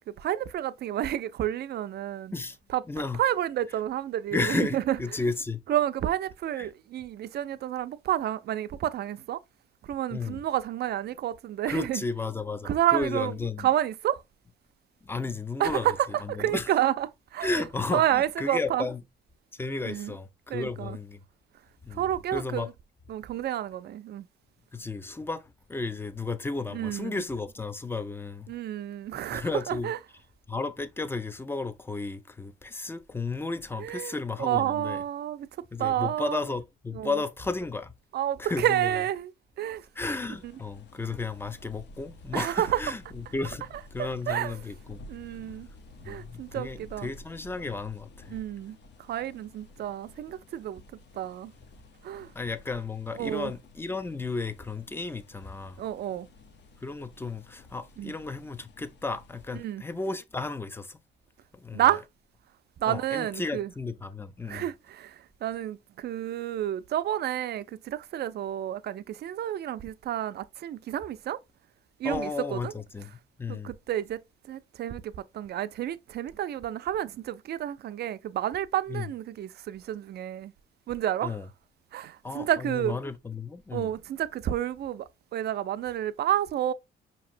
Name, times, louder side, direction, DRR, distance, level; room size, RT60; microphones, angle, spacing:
voice 1, 0.2-2.3 2.7-2.8 3.1-5.0 5.7-9.4 9.9-12.0 12.6-14.2 15.6-17.6 17.9-18.9 19.9-20.1 20.5-21.0 21.9-22.7 23.1-24.2 26.7-27.2 28.5-30.0 33.8-35.5 35.8-36.4 36.9-37.2 38.1-39.3 39.6-39.8 40.4-40.5 42.3-42.8 44.0-44.6 45.1-45.7 46.1-47.1 48.3-48.8 49.1-50.8 51.2-51.5 52.0-52.3 53.1-53.5 55.8-56.3 58.0-58.1 59.5-59.8 61.7-62.0 62.8-63.7 64.5-71.4 72.0-72.7 73.5-74.2 74.5-80.5 80.9-81.4 81.9-83.0 83.7-86.7, right 12 dB, 55° right, 0.4 m, -30 dB
voice 2, 2.9-3.2 4.3-5.6 6.6-6.7 10.1-10.4 11.7-13.7 15.0-15.9 16.4-16.7 17.4-19.0 19.5-21.2 21.8-22.0 22.3-22.7 24.7-25.4 25.7-28.5 29.3-29.9 30.5-35.0 35.7-37.9 38.4-39.0 40.0-45.0 46.0-48.4 52.4-55.8 56.8-61.0 61.5-61.9 62.9-64.7 72.0-73.1 73.4-73.7 78.9-79.1 81.2-81.4 82.2-83.9, left 3 dB, 10° left, 0.4 m, -33 dB
sound 1, 40.3-59.6, left 1 dB, 60° left, 0.7 m, -51 dB
5.2 x 2.9 x 2.5 m
cardioid pair, 90°, 20 cm